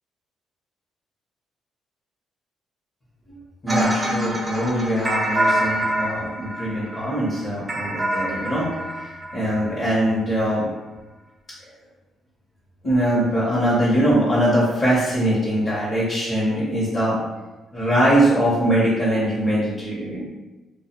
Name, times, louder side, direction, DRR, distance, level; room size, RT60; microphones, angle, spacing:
voice 1, 3.6-8.7 8.9-9.0 9.3-10.7 12.8-17.2 17.7-20.2, right 1 dB, 35° left, -8 dB, 0.9 m, -22 dB
sound 1, 3.7-9.8, right 1 dB, 20° right, 0.4 m, -25 dB
2.2 x 2.1 x 2.8 m, 1.1 s
cardioid pair, 90°, 0 cm